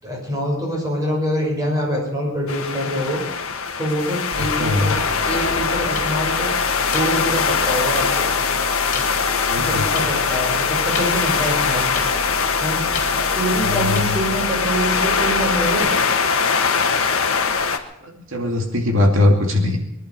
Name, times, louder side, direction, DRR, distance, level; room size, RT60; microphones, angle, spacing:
voice 1, 0.0-3.2 3.8-5.0 5.2-6.5 6.9-8.3 9.5-11.9 12.6-12.8 13.1-15.9, equal, 20° right, -2 dB, 6.2 m, -25 dB
sound 1, 2.5-17.8, left 5 dB, 85° left, 1.4 m, -21 dB
sound 2, 4.3-15.8, right 1 dB, ahead, 5.2 m, -36 dB
voice 2, 4.6-5.0 9.5-9.8 13.6-14.1 18.3-19.8, left 2 dB, 65° right, 2 dB, 2.4 m, -19 dB
sound 3, 5.9-6.0 6.9-7.1 7.9-8.0 8.9-9.0 9.9-10.0 10.9-11.1 11.9-12.1 12.9-13.1 13.9-14.1, left 4 dB, 35° left, 3.5 m, -27 dB
22.5 x 11.0 x 5.5 m, 0.79 s
head